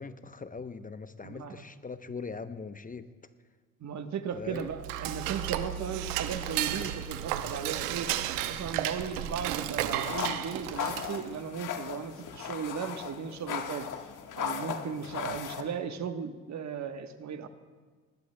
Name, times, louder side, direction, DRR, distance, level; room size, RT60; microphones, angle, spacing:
voice 1, 0.0-3.1 4.4-4.7 15.2-15.4, left 4 dB, 25° left, 10 dB, 0.8 m, -41 dB
voice 2, 1.2-1.6 3.8-8.1 8.4-13.9 14.3-17.5, right 7 dB, 50° right, 8 dB, 1.2 m, -36 dB
Dishes pots and pans / Cutlery silverware, 4.5-11.4, right 12 dB, 85° right, 0.8 m, -33 dB
sound 1, 10.0-15.6, left 8 dB, 60° left, 1.4 m, -37 dB
21.5 x 20.0 x 2.2 m, 1.5 s
hypercardioid pair, 60°, 35 cm